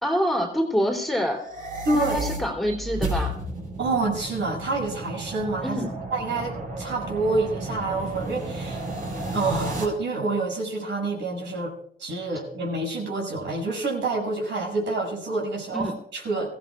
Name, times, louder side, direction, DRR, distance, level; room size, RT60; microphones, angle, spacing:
voice 1, 0.0-1.4 1.9-3.3 5.6-5.9 15.7-15.9, equal, ahead, 1 dB, 3.3 m, -26 dB
sound 1, 1.3-9.8, right 2 dB, 45° right, 5.3 m, -33 dB
voice 2, 1.8-2.2 3.8-5.8 6.1-8.9 9.3-11.7 12.0-16.5, right 3 dB, 70° right, -2 dB, 7.0 m, -27 dB
24.5 x 16.0 x 2.5 m, 0.68 s
cardioid pair, 90°, 20 cm